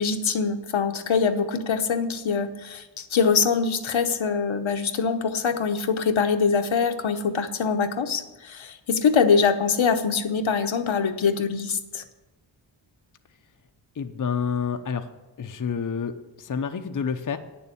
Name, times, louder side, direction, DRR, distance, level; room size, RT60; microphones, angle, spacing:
voice 1, 0.0-12.0, left 5 dB, 75° left, 7 dB, 1.0 m, -23 dB
voice 2, 14.0-15.1 15.4-17.4, left 6 dB, 40° left, 7 dB, 0.7 m, -29 dB
9.4 x 7.1 x 8.3 m, 1.1 s
wide cardioid pair, 110°, 48 cm